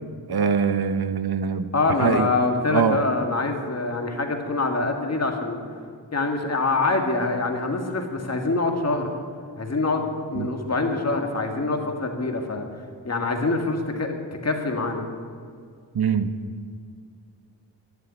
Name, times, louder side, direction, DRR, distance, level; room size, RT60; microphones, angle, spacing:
voice 1, 0.3-1.7 2.0-2.3 2.7-3.0 10.3-10.5 15.9-16.3, right 6 dB, 65° right, 10 dB, 0.9 m, -23 dB
voice 2, 1.7-5.6 6.1-9.1 9.6-12.7 13.0-14.1 14.4-15.1, left 3 dB, 40° left, 3 dB, 1.9 m, -25 dB
11.5 x 11.0 x 9.9 m, 2.1 s
wide cardioid pair, 130°, 41 cm